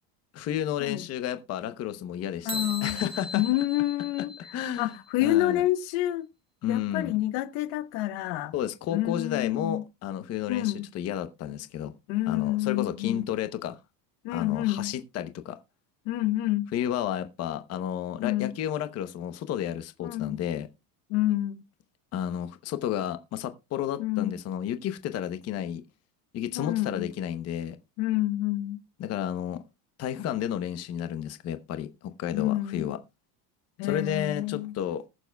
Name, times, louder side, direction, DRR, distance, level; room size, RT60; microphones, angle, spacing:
voice 1, 0.3-3.5 4.5-5.0 5.2-5.6 6.6-7.1 8.5-11.9 12.3-13.8 14.3-15.6 16.7-20.7 22.1-25.8 26.3-27.8 29.0-29.6 30.0-33.0 33.8-35.0, left 10 dB, 35° left, 0.8 m, -32 dB
voice 2, 2.4-3.0 3.3-6.2 6.7-8.5 8.9-9.8 10.5-10.9 12.1-13.3 14.2-14.9 16.1-16.7 18.2-18.5 20.0-20.4 21.1-21.6 24.0-24.3 26.6-27.1 28.0-28.8 32.3-32.9 33.8-34.8, left 15 dB, 65° left, 1.0 m, -28 dB
sound 1, 2.5-5.1, left 2 dB, 10° right, 1.0 m, -38 dB
20.0 x 7.0 x 2.2 m
cardioid pair, 160°, 43 cm